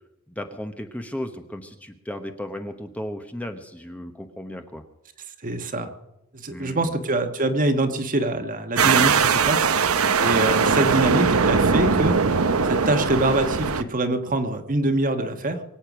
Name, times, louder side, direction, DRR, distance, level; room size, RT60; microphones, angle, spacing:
voice 1, 0.3-4.8 6.5-6.9, left 1 dB, 5° left, 6 dB, 1.0 m, -35 dB
voice 2, 5.4-5.9 6.3-9.7 10.2-12.2 12.6-15.6, right 2 dB, 40° right, 7 dB, 1.4 m, -24 dB
sound 1, 8.8-13.8, right 5 dB, 75° right, 0.8 m, -20 dB
23.0 x 8.8 x 6.1 m, 0.93 s
head